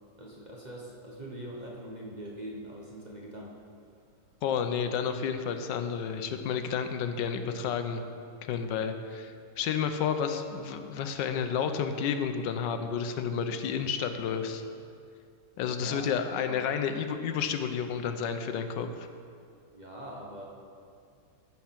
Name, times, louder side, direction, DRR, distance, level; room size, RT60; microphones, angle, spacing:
voice 1, 0.2-3.5 15.6-16.1 16.4-16.6 19.7-20.4, right 1 dB, 30° right, -3 dB, 1.0 m, -42 dB
voice 2, 4.4-8.0 8.5-14.6 15.6-19.1, left 7 dB, 85° left, 8 dB, 1.3 m, -31 dB
13.5 x 4.7 x 5.8 m, 2.3 s
omnidirectional pair, 1.9 m